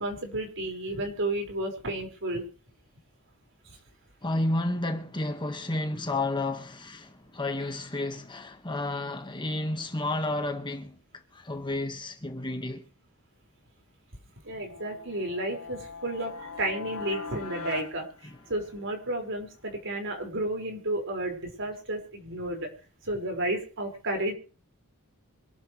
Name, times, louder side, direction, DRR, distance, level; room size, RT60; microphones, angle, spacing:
voice 1, 0.0-2.5 14.4-18.1 18.5-22.7 23.0-24.3, right 1 dB, 60° right, 5.4 m, -32 dB
voice 2, 4.2-11.0 11.3-12.9 18.2-18.4, left 2 dB, 20° left, 1.6 m, -31 dB
sound 1, 14.6-19.0, left 4 dB, 70° left, 2.0 m, -41 dB
25.5 x 11.5 x 3.3 m
head